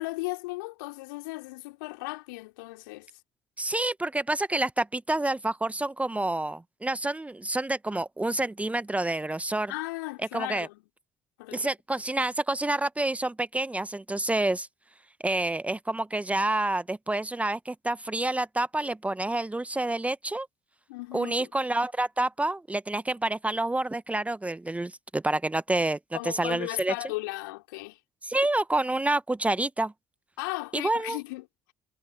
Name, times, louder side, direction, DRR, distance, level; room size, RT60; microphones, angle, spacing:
voice 1, 0.0-3.1 9.7-10.8 11.4-11.7 20.9-21.5 26.1-28.0 30.4-31.7, left 23 dB, 70° left, 3.5 m, -36 dB
voice 2, 3.6-9.7 10.3-10.7 11.5-14.7 15.2-20.5 21.1-26.0 26.2-26.9 28.2-29.9 30.7-31.2, right 2 dB, 10° right, 1.2 m, -28 dB
figure-of-eight pair, 50°, 11 cm